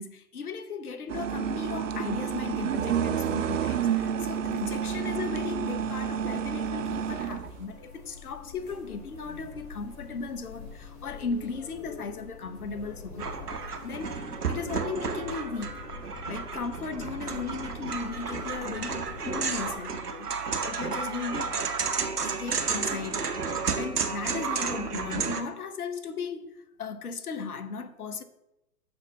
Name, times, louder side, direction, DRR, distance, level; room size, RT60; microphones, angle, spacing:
voice 1, 0.0-13.3 13.8-14.1 14.5-15.8 16.3-21.5 22.2-26.5 26.8-28.2, left 5 dB, 75° left, 1.0 m, -36 dB
sound 1, 1.1-7.6, right 8 dB, 55° right, 0.6 m, -30 dB
sound 2, 6.8-19.8, left 3 dB, 20° left, 1.9 m, -44 dB
sound 3, 13.2-25.4, right 5 dB, 85° right, 1.0 m, -32 dB
6.6 x 4.3 x 6.0 m
figure-of-eight pair, 120°, 45 cm